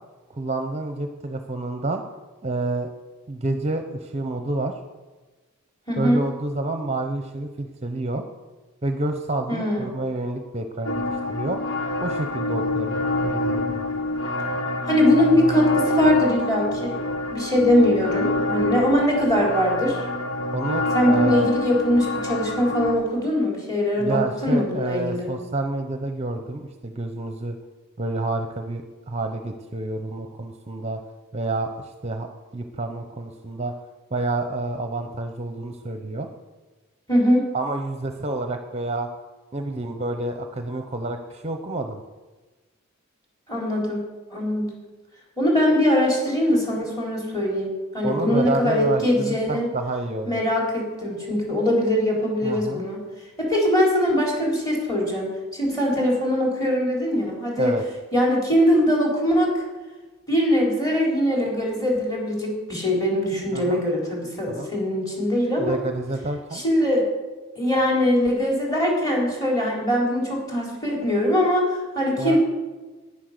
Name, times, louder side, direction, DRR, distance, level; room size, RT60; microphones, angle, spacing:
voice 1, 0.3-2.0 2.4-2.9 3.3-4.7 6.0-8.2 8.8-11.6 12.0-13.8 20.5-21.5 24.0-27.6 28.0-31.0 31.3-33.7 34.1-36.3 37.5-39.1 39.5-42.0 48.0-50.4 52.4-52.9 57.6-57.8 63.5-63.8 64.5-64.7 65.6-66.6 72.2-72.4, right 2 dB, 30° right, 6 dB, 0.7 m, -29 dB
voice 2, 5.9-6.2 9.5-9.9 14.8-17.0 17.3-20.0 20.9-25.3 37.1-37.4 43.5-44.0 44.3-44.7 45.4-49.7 50.3-53.0 53.4-57.8 58.1-59.6 60.3-65.8 66.5-67.1 67.6-72.4, left 1 dB, 15° left, -2 dB, 3.9 m, -22 dB
sound 1, 10.9-22.9, left 2 dB, 85° left, 1.4 m, -26 dB
10.0 x 9.9 x 6.6 m, 1.2 s
head